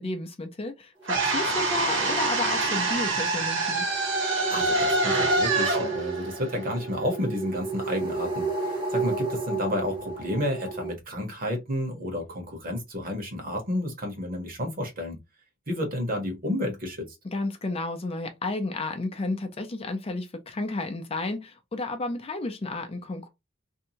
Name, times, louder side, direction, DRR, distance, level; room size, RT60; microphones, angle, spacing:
voice 1, 0.0-3.8 17.3-23.3, left 2 dB, 30° left, 0.5 m, -32 dB
sound 1, 1.0-10.9, right 3 dB, 25° right, 0.8 m, -33 dB
sound 2, 1.1-7.2, right 2 dB, 75° right, 1.3 m, -26 dB
voice 2, 4.5-15.2 15.7-17.1, left 1 dB, 45° right, 1.1 m, -31 dB
2.7 x 2.3 x 2.7 m
head